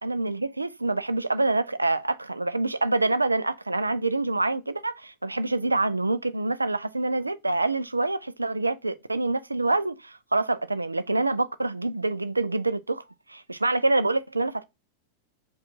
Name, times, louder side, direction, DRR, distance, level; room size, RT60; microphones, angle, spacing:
voice 1, 0.0-13.0 13.3-14.6, right 2 dB, 80° right, 0.3 m, -26 dB
5.0 x 2.3 x 4.0 m
figure-of-eight pair, 90°, 0 cm